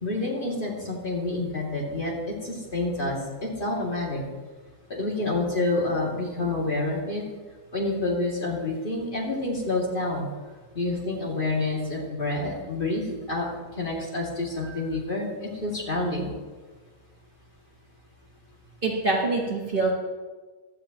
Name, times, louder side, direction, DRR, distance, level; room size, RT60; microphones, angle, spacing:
voice 1, 0.0-4.2 4.9-7.2 7.7-10.3 10.7-13.5 13.8-16.3, left 2 dB, 35° left, -3 dB, 2.6 m, -28 dB
voice 2, 18.8-19.9, right 3 dB, 35° right, -2 dB, 1.6 m, -25 dB
16.0 x 12.0 x 3.0 m, 1.3 s
omnidirectional pair, 1.6 m